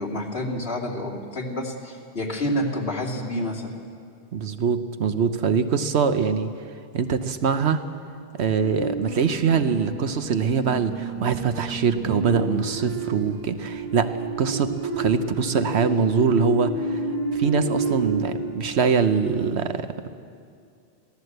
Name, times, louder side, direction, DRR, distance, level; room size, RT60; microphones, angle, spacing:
voice 1, 0.0-3.7, equal, 60° left, -1 dB, 3.0 m, -28 dB
voice 2, 4.3-6.5 6.9-7.8 8.4-17.0 17.3-19.9, right 6 dB, 75° right, 10 dB, 1.1 m, -23 dB
sound 1, 8.6-18.4, right 2 dB, 30° right, 7.9 m, -30 dB
22.0 x 16.0 x 7.9 m, 2.3 s
omnidirectional pair, 1.1 m